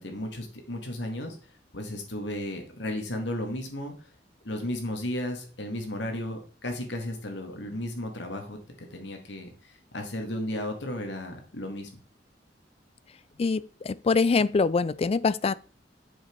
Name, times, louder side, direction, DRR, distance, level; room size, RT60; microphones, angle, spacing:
voice 1, 0.0-1.4 1.7-3.9 4.4-11.9, left 1 dB, 80° left, 2.0 m, -34 dB
voice 2, 13.4-15.5, left 4 dB, 35° left, 0.3 m, -24 dB
7.2 x 5.9 x 4.5 m
head